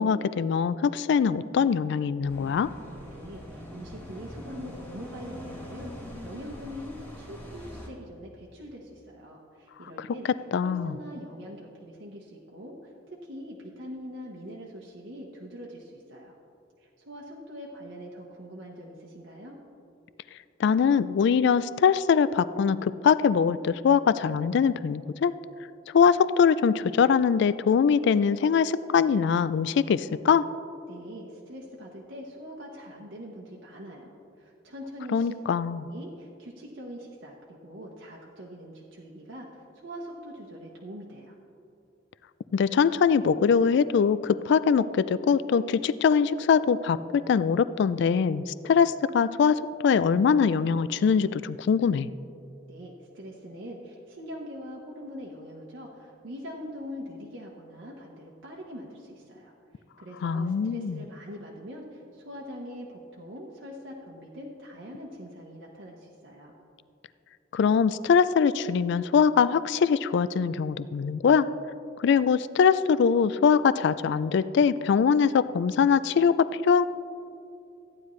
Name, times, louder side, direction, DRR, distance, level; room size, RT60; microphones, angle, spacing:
voice 1, 0.0-2.7 10.0-10.1 10.5-11.0 20.6-25.3 25.9-30.5 35.1-35.9 42.5-52.1 60.2-61.0 67.5-71.5 72.0-76.8, left 6 dB, 60° left, 16 dB, 0.3 m, -22 dB
sound 1, 2.2-7.9, left 1 dB, 10° left, 1.5 m, -42 dB
voice 2, 3.1-10.3 10.6-12.9 13.2-16.3 16.8-19.6 30.9-35.5 35.8-41.4 52.7-59.5 60.0-66.5, equal, 75° right, -3 dB, 1.0 m, -43 dB
14.0 x 9.7 x 3.2 m, 2.6 s
head